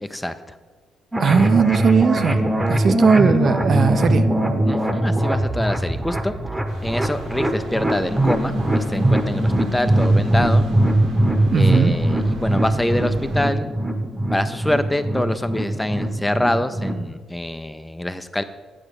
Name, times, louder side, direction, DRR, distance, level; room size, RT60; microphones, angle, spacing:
voice 1, 0.1-0.6 4.6-6.3 6.8-10.6 11.5-13.7 14.3-18.4, left 1 dB, 10° left, 10 dB, 0.4 m, -25 dB
sound 1, 1.1-17.0, right 1 dB, 15° right, 0.9 m, -21 dB
voice 2, 1.2-4.3 11.5-11.9, right 6 dB, 50° right, 10 dB, 0.5 m, -18 dB
sound 2, 6.7-13.4, right 3 dB, 75° right, 1.7 m, -39 dB
8.8 x 4.8 x 6.5 m, 1.4 s
cardioid pair, 90°, 0 cm